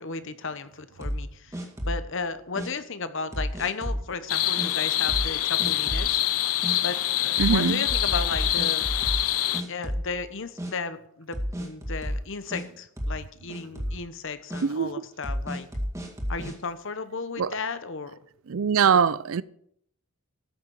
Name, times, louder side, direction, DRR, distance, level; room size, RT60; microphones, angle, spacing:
voice 1, 0.0-6.2 6.8-8.9 9.5-15.7 16.3-18.1 18.8-19.0, left 4 dB, 55° left, 1.0 m, -34 dB
sound 1, 1.0-2.1 2.6-2.7 3.3-4.1 4.6-4.7 5.1-5.3 5.6-6.1 6.6-6.8 7.4-9.3 9.5-10.3 10.6-10.7 11.3-12.6 13.0-13.2 13.5-14.0 14.5-14.6 15.2-16.6, equal, 15° right, 2.1 m, -31 dB
sound 2, 4.3-9.6, left 13 dB, 80° left, 0.8 m, -25 dB
voice 2, 7.4-7.9 14.6-15.0 17.4-17.5 18.5-19.4, right 6 dB, 65° right, 0.5 m, -23 dB
13.5 x 6.7 x 7.3 m
head